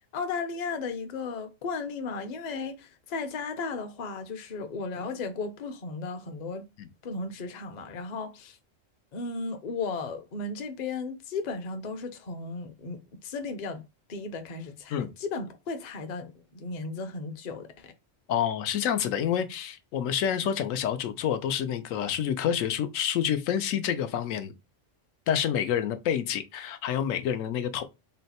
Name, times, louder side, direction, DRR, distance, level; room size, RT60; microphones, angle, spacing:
voice 1, 0.1-6.7 7.0-8.6 9.1-13.8 14.1-17.9, left 4 dB, 45° left, 0.6 m, -35 dB
voice 2, 18.3-24.5 25.3-27.8, left 9 dB, 90° left, 1.0 m, -28 dB
3.9 x 2.2 x 4.1 m
omnidirectional pair, 1.3 m